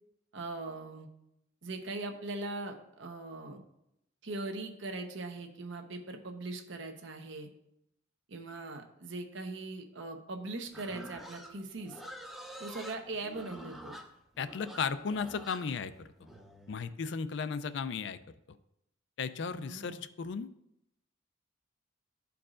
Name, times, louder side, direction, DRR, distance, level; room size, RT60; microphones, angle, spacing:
voice 1, 0.3-1.1 1.6-3.6 4.2-7.5 8.3-12.0 12.6-13.9 19.5-20.0, right 2 dB, 75° right, 4 dB, 0.9 m, -40 dB
Livestock farm animals working animals, 10.7-16.8, right 1 dB, ahead, 0.6 m, -47 dB
voice 2, 14.4-15.9 16.7-18.2 19.2-20.5, left 5 dB, 65° left, 13 dB, 0.4 m, -35 dB
12.5 x 4.7 x 2.5 m, 0.81 s
head